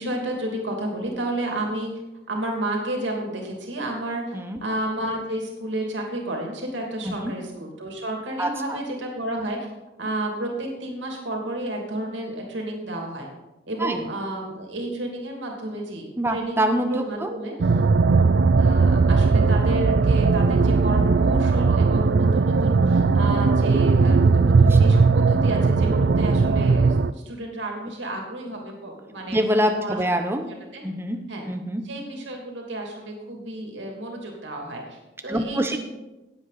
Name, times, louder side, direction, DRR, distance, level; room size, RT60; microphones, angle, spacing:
voice 1, 0.0-1.9 2.3-9.7 10.0-13.3 13.7-17.8 18.1-29.4 29.8-30.0 30.5-30.8 31.3-31.5 31.8-35.8, right 1 dB, 80° right, 1 dB, 2.8 m, -31 dB
voice 2, 16.2-17.3 18.2-18.3 29.3-30.5 30.8-31.2 31.5-31.8 35.3-35.8, right 1 dB, 15° right, 6 dB, 0.9 m, -25 dB
sound 1, 17.6-27.1, right 4 dB, 60° right, 0.4 m, -18 dB
17.5 x 8.1 x 4.2 m, 1.1 s
head